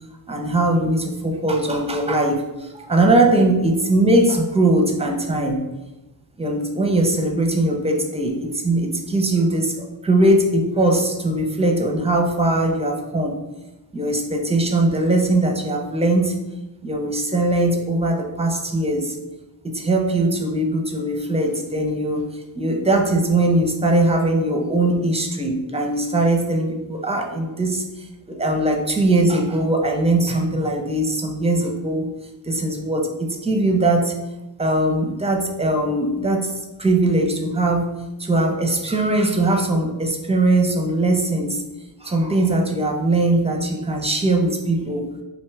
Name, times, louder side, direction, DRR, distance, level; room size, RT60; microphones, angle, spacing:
voice 1, 0.3-5.6 6.4-9.7 10.0-13.4 13.9-16.4 16.8-19.2 19.6-22.2 22.6-32.1 32.4-34.1 34.6-36.5 36.8-37.9 38.2-41.6 42.0-45.1, right 2 dB, 15° right, 2 dB, 0.6 m, -20 dB
3.3 x 2.6 x 3.3 m, 1.0 s
cardioid pair, 50°, 46 cm